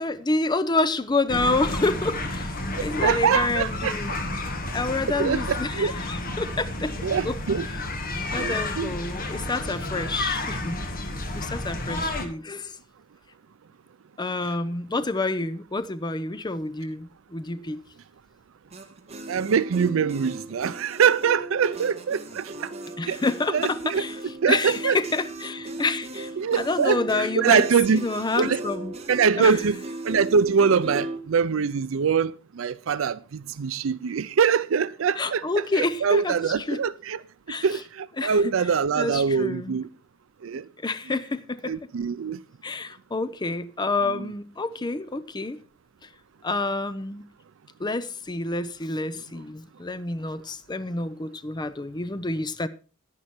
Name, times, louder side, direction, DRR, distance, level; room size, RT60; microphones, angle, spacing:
voice 1, 0.0-4.2 4.7-7.0 7.2-7.4 7.7-7.9 8.3-10.8 11.3-12.8 14.2-17.8 23.0-28.9 29.4-29.6 35.1-36.8 37.5-37.8 38.2-39.8 40.8-41.9 42.6-45.6 46.0-46.1 46.4-47.3 47.8-52.7, left 3 dB, 20° left, 0.6 m, -28 dB
sound 1, 1.3-12.3, left 2 dB, 45° left, 1.7 m, -31 dB
voice 2, 2.7-4.0 5.2-5.9 7.0-7.7 8.4-8.9 19.3-22.7 23.1-23.2 23.5-24.0 24.4-25.0 26.4-28.0 28.4-28.6 29.1-29.8 30.0-35.4 36.0-37.2 37.6-39.9 40.4-40.7 41.7-42.4, right 6 dB, 75° right, 0.5 m, -23 dB
Happy Birthday with Kazoo and Ukulele, 18.7-31.2, right 1 dB, 30° right, 1.8 m, -37 dB
11.0 x 10.5 x 4.3 m
head